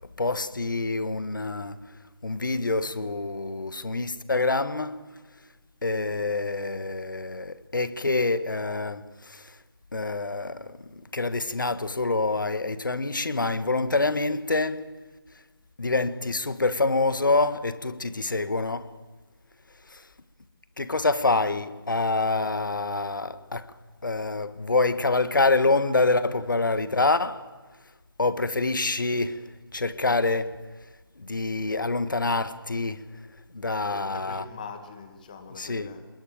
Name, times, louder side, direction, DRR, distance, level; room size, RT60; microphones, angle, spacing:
voice 1, 0.2-1.9 2.2-5.0 5.8-9.5 9.9-14.9 15.8-18.9 19.9-20.0 20.8-23.7 24.0-27.5 28.2-30.6 31.2-33.2 33.5-34.4 35.6-35.9, left 3 dB, 55° left, 1.5 m, -26 dB
voice 2, 33.7-36.0, left 5 dB, 20° left, 1.9 m, -43 dB
26.5 x 21.5 x 9.0 m
figure-of-eight pair, 160°, 13 cm